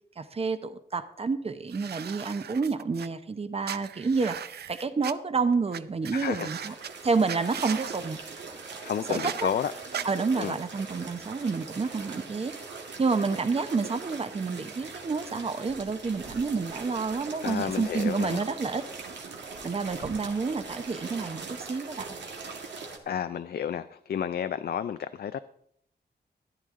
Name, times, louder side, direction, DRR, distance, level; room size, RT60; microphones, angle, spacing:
voice 1, 0.2-4.4 4.7-6.7 7.0-8.2 9.1-9.5 10.0-12.5 13.0-18.9 19.6-22.1, right 4 dB, 35° right, 10 dB, 0.8 m, -29 dB
sound 1, 1.7-3.1 3.6-5.1 5.7-5.8 6.0-6.9 7.3-8.0 9.1-9.4 9.9-10.0, right 9 dB, 65° right, 0.5 m, -38 dB
voice 2, 6.1-6.7 8.8-9.7 10.4-10.6 17.4-18.4 23.1-25.4, left 8 dB, 65° left, 11 dB, 0.4 m, -31 dB
sound 2, 6.5-23.0, right 4 dB, 90° right, 1.9 m, -41 dB
14.0 x 11.0 x 3.7 m, 0.70 s
wide cardioid pair, 125°, 18 cm